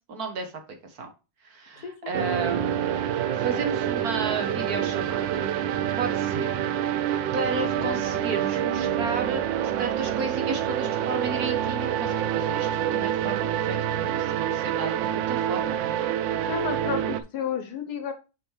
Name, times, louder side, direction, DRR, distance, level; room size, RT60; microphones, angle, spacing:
voice 1, 0.1-1.1 1.4-2.8 3.3-5.5 6.0-6.6 6.9-9.5 9.8-15.9, right 3 dB, 55° right, 6 dB, 1.5 m, -33 dB
voice 2, 1.8-2.2 7.8-8.2 16.4-18.1, left 7 dB, 60° left, 8 dB, 1.3 m, -32 dB
sound 1, 2.1-17.2, right 10 dB, 80° right, 1.3 m, -27 dB
6.2 x 5.2 x 3.1 m, 0.29 s
omnidirectional pair, 2.0 m